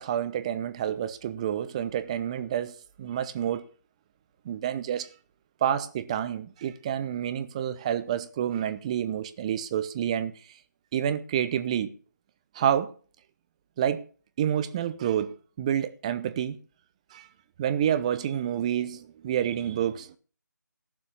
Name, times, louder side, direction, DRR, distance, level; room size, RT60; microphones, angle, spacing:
voice 1, 0.0-3.7 4.4-5.1 5.6-10.3 10.9-11.9 12.5-12.9 13.8-14.0 14.4-16.6 17.1-17.3 17.6-20.2, right 10 dB, 20° right, 0.7 m, -28 dB
16.0 x 7.2 x 7.1 m
figure-of-eight pair, 160°, 10 cm